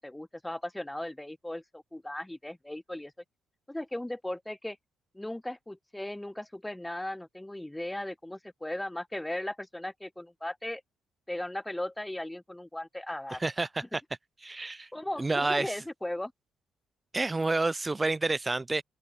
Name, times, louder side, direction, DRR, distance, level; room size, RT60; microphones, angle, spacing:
voice 1, 0.0-3.1 3.7-4.8 5.1-10.8 11.3-13.4 14.9-16.3, left 1 dB, 10° left, 1.7 m, -37 dB
voice 2, 13.4-14.0 14.4-14.9 15.2-15.8 17.1-18.8, right 3 dB, 20° right, 2.3 m, -29 dB
open air
cardioid pair, 90°, 0 cm